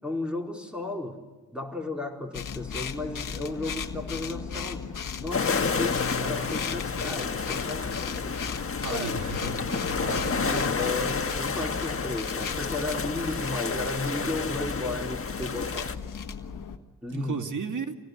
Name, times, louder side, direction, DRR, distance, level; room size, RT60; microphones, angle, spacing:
voice 1, 0.0-1.2 1.5-4.9 5.2-8.5 8.9-9.1 10.5-15.9 17.0-17.4, left 2 dB, 5° right, 1 dB, 4.5 m, -34 dB
sound 1, 2.3-16.8, left 6 dB, 65° left, 1.7 m, -36 dB
sound 2, 5.3-16.0, left 5 dB, 40° left, 1.6 m, -30 dB
voice 2, 8.8-10.6 17.1-17.9, right 5 dB, 60° right, 6 dB, 2.6 m, -34 dB
26.0 x 18.0 x 8.1 m, 1.3 s
supercardioid pair, 45°, 35 cm